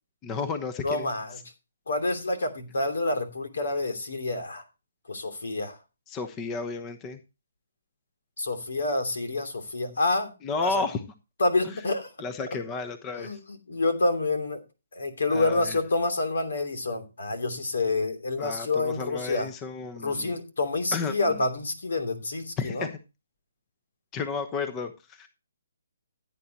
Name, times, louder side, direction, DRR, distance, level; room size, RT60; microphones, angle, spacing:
voice 1, 0.2-1.1 6.1-7.2 10.4-11.0 11.6-11.8 12.2-13.3 15.3-15.8 18.4-20.3 20.9-21.4 22.6-22.9 24.1-25.3, left 4 dB, 20° left, 10 dB, 1.0 m, -32 dB
voice 2, 0.8-1.4 1.9-4.6 5.1-5.8 8.4-10.3 10.6-10.8 11.4-12.1 13.2-13.4 13.7-14.6 14.9-19.5 20.0-22.9, left 2 dB, 75° left, 7 dB, 2.9 m, -28 dB
15.5 x 9.0 x 2.9 m, 0.28 s
hypercardioid pair, 150°, 0 cm